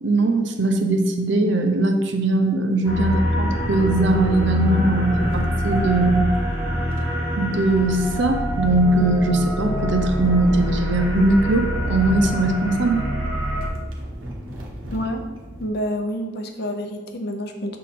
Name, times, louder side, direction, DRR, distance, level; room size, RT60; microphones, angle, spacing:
voice 1, 0.0-6.3 7.4-13.0, right 2 dB, 60° right, 5 dB, 0.6 m, -20 dB
sound 1, 2.8-13.7, equal, 10° right, 1.4 m, -25 dB
sound 2, 3.3-15.7, equal, 80° right, 1.1 m, -35 dB
voice 2, 14.9-15.2 15.6-17.8, equal, 50° left, 4 dB, 0.7 m, -28 dB
6.2 x 3.8 x 4.2 m, 1.2 s
head